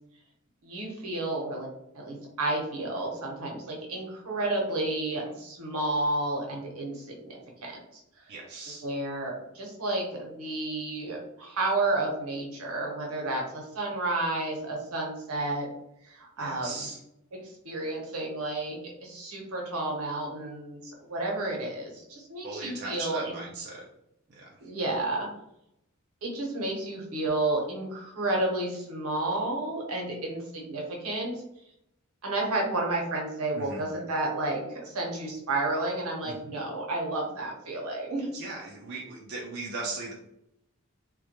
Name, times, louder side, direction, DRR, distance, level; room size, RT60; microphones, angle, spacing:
voice 1, 0.6-1.7 1.9-7.8 8.2-8.3 8.8-15.7 16.0-16.9 17.3-23.4 24.6-25.3 26.2-31.4 32.2-38.3, right 2 dB, 80° right, -1 dB, 0.7 m, -31 dB
voice 2, 8.3-8.8 16.4-17.0 22.4-23.9 24.3-24.6 33.5-33.8 36.2-36.4 38.3-40.1, right 3 dB, 50° right, -2 dB, 0.4 m, -38 dB
2.1 x 2.1 x 2.8 m, 0.80 s
head